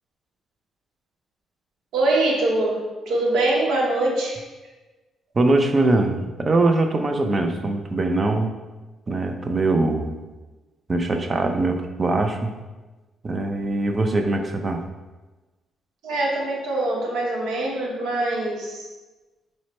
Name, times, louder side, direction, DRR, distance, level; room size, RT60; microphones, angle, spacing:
voice 1, 1.9-4.4 16.0-18.9, right 2 dB, 80° right, -2 dB, 0.9 m, -23 dB
voice 2, 5.4-8.5 9.1-10.1 10.9-12.5 13.2-14.8, right 2 dB, 30° right, 5 dB, 0.5 m, -22 dB
4.5 x 2.1 x 4.2 m, 1.2 s
cardioid pair, 90°, 0 cm